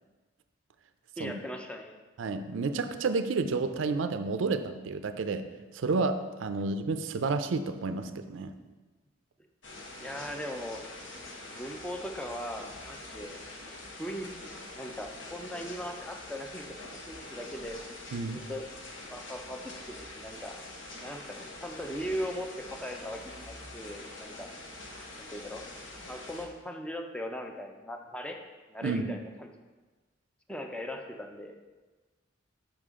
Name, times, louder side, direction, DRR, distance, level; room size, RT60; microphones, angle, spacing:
voice 1, 1.2-1.9 10.0-10.8 11.4-13.4 14.0-16.8 17.1-18.0 18.3-18.6 19.1-20.6 21.0-24.5 25.2-25.6 26.1-28.4 28.7-29.5 30.5-31.6, equal, 5° left, 3 dB, 0.5 m, -39 dB
voice 2, 2.2-5.5 5.7-8.5 18.1-18.4 28.8-29.1, right 4 dB, 70° right, 10 dB, 0.4 m, -30 dB
sound 1, 9.6-26.5, left 2 dB, 65° left, 1.1 m, -45 dB
6.7 x 5.8 x 3.6 m, 1.3 s
head